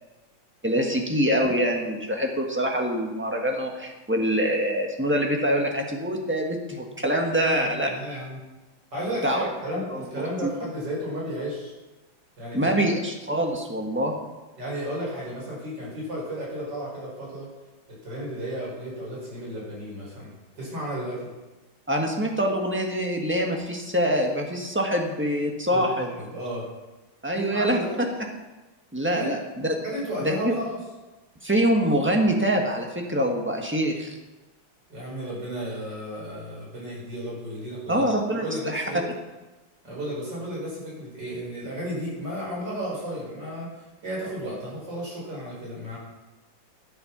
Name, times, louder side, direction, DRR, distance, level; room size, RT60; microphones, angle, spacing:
voice 1, 0.6-7.9 9.2-9.5 9.7-10.5 12.5-14.1 21.9-26.1 27.2-27.8 28.9-29.7 30.2-30.5 31.4-34.2 37.9-38.8, equal, 5° right, 1 dB, 1.2 m, -25 dB
voice 2, 7.4-8.4 8.9-11.7 12.4-12.8 14.6-17.5 17.9-21.3 25.7-26.7 27.3-28.0 29.1-29.3 29.8-30.8 34.9-38.1 38.4-39.0 39.8-46.0, equal, 60° right, -5 dB, 5.9 m, -33 dB
12.5 x 8.0 x 5.9 m, 1.1 s
omnidirectional pair, 2.2 m